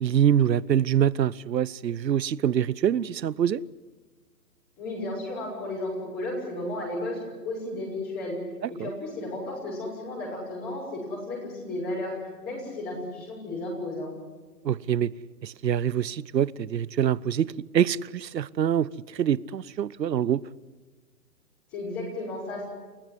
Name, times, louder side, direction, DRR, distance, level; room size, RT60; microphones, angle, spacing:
voice 1, 0.0-3.6 8.8-8.9 14.6-15.1 15.4-20.4, right 9 dB, 80° right, 1.0 m, -25 dB
voice 2, 4.8-8.4 8.7-12.1 12.4-14.1 21.7-22.6, left 1 dB, 20° left, 6.6 m, -33 dB
28.5 x 15.0 x 9.8 m
hypercardioid pair, 155°, 50 cm